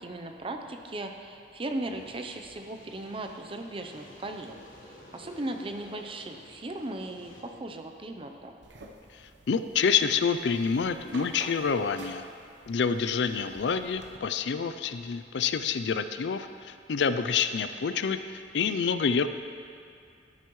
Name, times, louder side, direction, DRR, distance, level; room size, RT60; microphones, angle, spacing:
voice 1, 0.0-4.6 4.8-8.5, right 2 dB, 30° right, 4 dB, 0.6 m, -37 dB
sound 1, 1.8-7.4, left 1 dB, 50° left, 2.0 m, -53 dB
sound 2, 8.6-14.2, right 2 dB, 80° right, 1.0 m, -49 dB
voice 2, 9.1-12.3 12.7-19.3, left 6 dB, 70° left, 11 dB, 0.4 m, -28 dB
12.5 x 10.5 x 3.1 m, 2.4 s
head